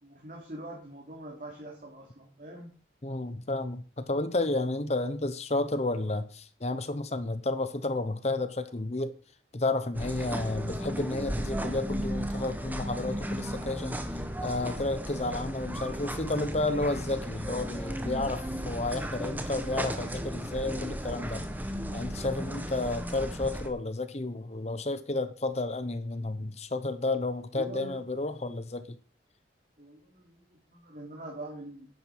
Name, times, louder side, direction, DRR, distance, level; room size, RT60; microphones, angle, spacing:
voice 1, 0.0-2.7 27.5-28.0 29.8-31.9, right 1 dB, 45° right, 3.2 m, -43 dB
voice 2, 3.0-9.1 9.5-14.0 14.4-21.5 21.9-29.0, left 2 dB, 35° left, 0.9 m, -31 dB
sound 1, 9.9-23.7, equal, 10° right, 1.4 m, -35 dB
10.5 x 8.9 x 6.4 m
head